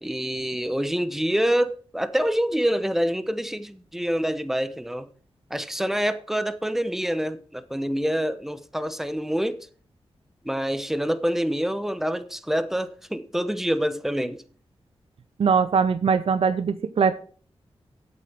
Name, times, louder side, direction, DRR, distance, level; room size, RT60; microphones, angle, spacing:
voice 1, 0.0-5.1 5.5-9.7 10.4-14.4, equal, 5° right, 0.9 m, -26 dB
voice 2, 15.4-17.1, right 6 dB, 65° right, 0.7 m, -21 dB
8.4 x 8.0 x 6.0 m
wide cardioid pair, 90°, 10 cm